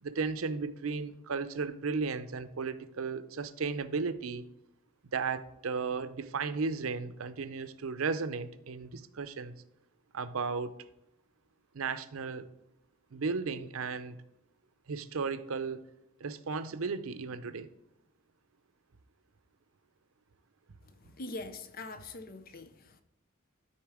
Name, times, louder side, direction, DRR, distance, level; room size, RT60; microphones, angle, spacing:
voice 1, 0.0-4.5 5.1-9.6 10.1-10.7 11.7-12.5 13.1-14.2 14.9-15.8 16.2-17.7, right 4 dB, 85° right, 0.6 m, -35 dB
voice 2, 21.0-23.0, left 2 dB, 45° left, 0.6 m, -43 dB
12.5 x 4.2 x 4.9 m
head